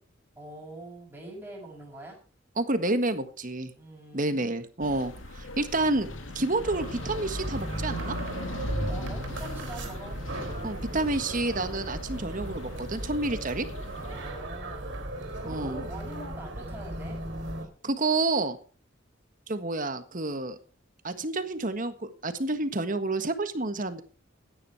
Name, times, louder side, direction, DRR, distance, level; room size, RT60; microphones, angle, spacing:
voice 1, 0.4-2.2 3.8-4.5 8.8-10.2 14.0-15.0 15.4-17.2, right 1 dB, 10° right, -7 dB, 5.9 m, -43 dB
voice 2, 2.6-3.7 4.1-6.1 6.3-8.2 10.6-13.7 15.4-15.8 17.8-18.6 19.5-20.6 21.0-24.0, right 2 dB, 40° right, 10 dB, 1.5 m, -29 dB
sound 1, 4.8-14.3, left 1 dB, 70° left, 2.4 m, -38 dB
sound 2, 6.6-17.6, right 1 dB, 60° right, 3.9 m, -37 dB
16.0 x 10.5 x 4.7 m, 0.40 s
head